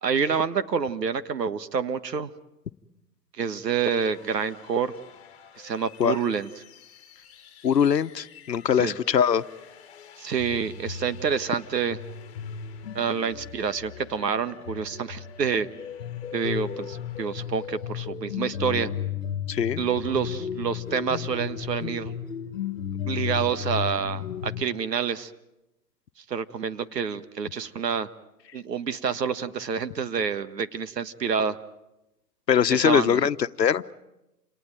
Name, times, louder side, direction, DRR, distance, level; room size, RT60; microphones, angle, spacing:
voice 1, 0.0-2.3 3.4-4.9 5.6-6.5 8.8-8.9 10.2-12.0 12.9-15.7 16.3-18.9 19.8-22.1 23.1-25.3 26.3-28.1 28.5-31.6 32.7-33.2, right 6 dB, 80° right, 12 dB, 1.6 m, -28 dB
sound 1, 3.8-18.0, left 8 dB, 10° left, 4.2 m, -51 dB
voice 2, 7.6-9.4 19.5-19.8 32.5-33.9, left 8 dB, 90° left, 12 dB, 1.1 m, -22 dB
sound 2, 10.4-24.6, left 9 dB, 55° left, 1.6 m, -34 dB
28.0 x 19.0 x 9.1 m, 0.93 s
hypercardioid pair, 160°, 48 cm